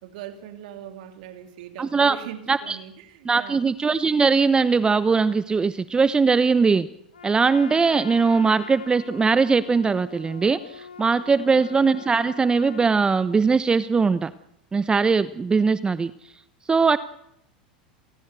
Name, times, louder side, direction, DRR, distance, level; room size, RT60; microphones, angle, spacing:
voice 1, 0.0-3.7 11.5-11.9, right 10 dB, 65° right, 3.1 m, -41 dB
voice 2, 1.8-2.2 2.5-2.8 3.3-6.9 7.2-14.3 14.7-16.1 16.7-17.0, right 4 dB, 20° right, 0.9 m, -20 dB
Trumpet, 7.1-12.9, left 6 dB, 90° left, 2.4 m, -43 dB
28.0 x 18.5 x 8.1 m
hypercardioid pair, 90°, 5 cm